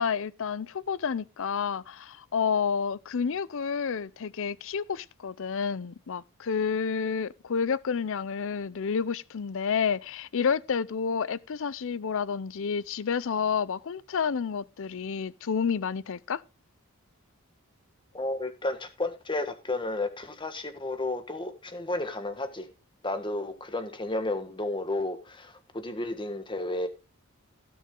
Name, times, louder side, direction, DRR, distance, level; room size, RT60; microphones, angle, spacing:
voice 1, 0.0-16.4, left 6 dB, 60° left, 0.5 m, -30 dB
voice 2, 18.1-22.7 23.0-26.9, left 2 dB, 20° left, 1.5 m, -32 dB
17.0 x 6.3 x 3.8 m
head